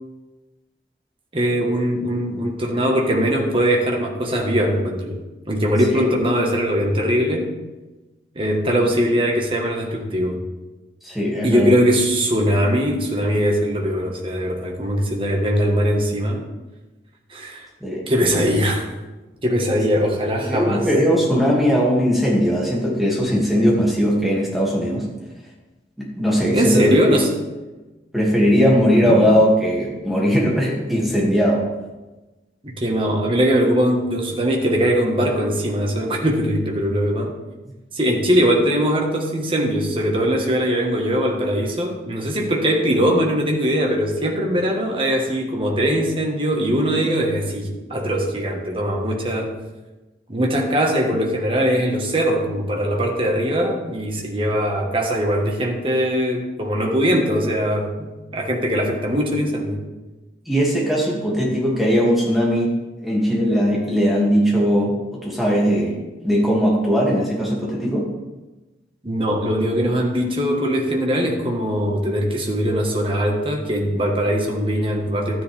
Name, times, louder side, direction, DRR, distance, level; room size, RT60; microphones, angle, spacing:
voice 1, 1.3-5.2 5.5-7.5 8.3-10.4 11.4-16.4 17.3-17.7 18.1-18.9 19.4-20.9 26.5-27.3 28.9-29.2 32.6-37.3 37.9-49.6 50.3-59.8 69.0-75.4, equal, 30° right, 0 dB, 1.5 m, -21 dB
voice 2, 11.0-11.7 17.8-18.0 19.7-20.1 20.5-25.1 26.0-27.0 28.1-31.6 60.5-62.7 63.0-65.9 66.2-68.1, equal, ahead, -5 dB, 2.4 m, -19 dB
12.5 x 9.9 x 3.5 m, 1.1 s
head